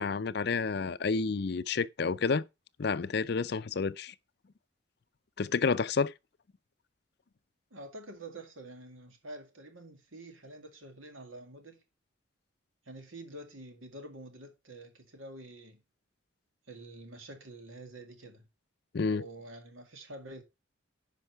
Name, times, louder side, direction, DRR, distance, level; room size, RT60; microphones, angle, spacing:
voice 1, 0.0-2.4 2.8-4.1 5.4-6.1 18.9-19.2, left 4 dB, 55° left, 0.5 m, -30 dB
voice 2, 7.7-11.8 12.9-15.8 16.7-18.5 19.1-20.4, right 1 dB, 80° right, 2.1 m, -47 dB
10.0 x 5.3 x 4.6 m
head